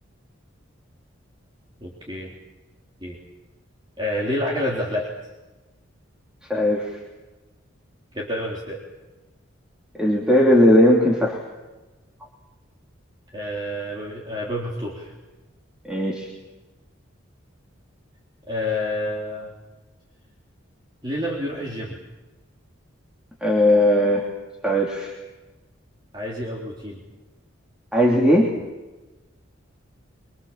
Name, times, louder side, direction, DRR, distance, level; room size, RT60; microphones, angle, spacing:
voice 1, 1.8-2.3 3.0-3.2 4.0-5.1 8.1-8.8 13.3-15.1 18.5-19.5 21.0-21.9 26.1-27.0, left 1 dB, 25° right, -4 dB, 3.6 m, -28 dB
voice 2, 6.5-6.9 9.9-11.4 15.8-16.3 23.4-24.3 24.6-25.1 27.9-28.5, left 1 dB, 5° right, -3 dB, 3.1 m, -18 dB
25.5 x 23.5 x 7.5 m, 1.1 s
head